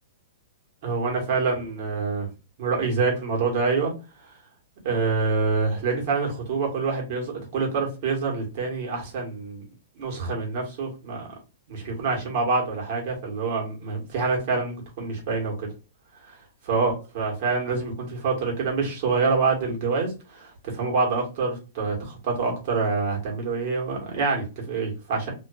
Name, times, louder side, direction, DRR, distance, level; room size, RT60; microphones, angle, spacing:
voice 1, 0.8-2.3 2.6-3.9 4.2-4.3 4.8-9.6 9.9-11.3 11.7-15.7 16.3-16.4 16.6-25.3, right 4 dB, 45° right, 0 dB, 1.2 m, -26 dB
2.4 x 2.4 x 2.3 m, 0.31 s
hypercardioid pair, 155°, 0 cm